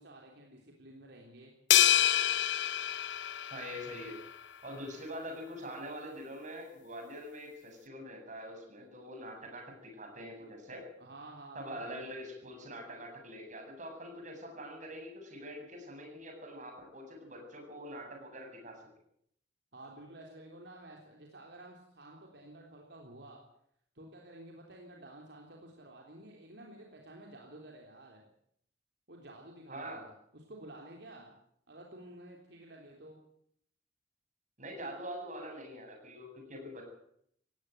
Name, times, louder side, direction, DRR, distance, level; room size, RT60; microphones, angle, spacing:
voice 1, 0.0-1.5 11.0-12.0 19.7-23.4 24.0-28.3 29.1-31.4 31.7-33.2, right 1 dB, 70° right, 0 dB, 3.6 m, -51 dB
sound 1, 1.7-4.2, left 12 dB, 85° left, 0.8 m, -27 dB
voice 2, 3.5-4.1 4.6-10.8 11.5-18.7 29.7-30.0 34.6-36.8, equal, 45° right, 2 dB, 7.7 m, -44 dB
18.0 x 16.5 x 9.2 m, 0.71 s
head